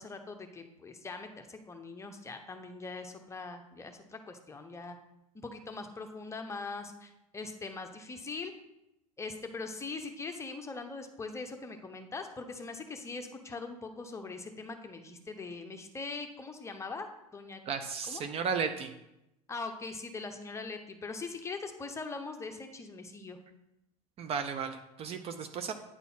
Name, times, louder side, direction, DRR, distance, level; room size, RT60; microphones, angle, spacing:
voice 1, 0.0-5.0 5.3-8.5 9.2-17.6 18.1-18.2 19.5-23.4, left 3 dB, 15° left, 6 dB, 0.9 m, -41 dB
voice 2, 17.7-18.9 24.2-25.7, right 6 dB, 30° right, 7 dB, 0.6 m, -34 dB
9.3 x 4.1 x 5.7 m, 0.89 s
figure-of-eight pair, 80°, 20 cm